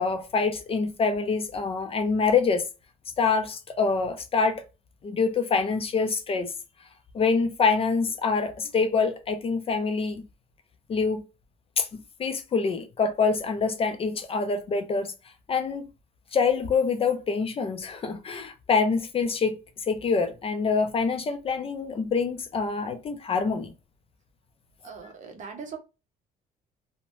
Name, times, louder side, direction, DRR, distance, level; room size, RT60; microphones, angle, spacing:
voice 1, 0.0-2.7 3.2-4.6 5.0-6.5 7.1-10.2 10.9-11.2 11.8-15.1 15.5-15.9 16.3-23.7, left 5 dB, 35° left, 0.5 m, -25 dB
voice 2, 24.8-25.8, right 6 dB, 45° right, 0.8 m, -40 dB
3.0 x 2.1 x 2.6 m
cardioid pair, 110°, 17 cm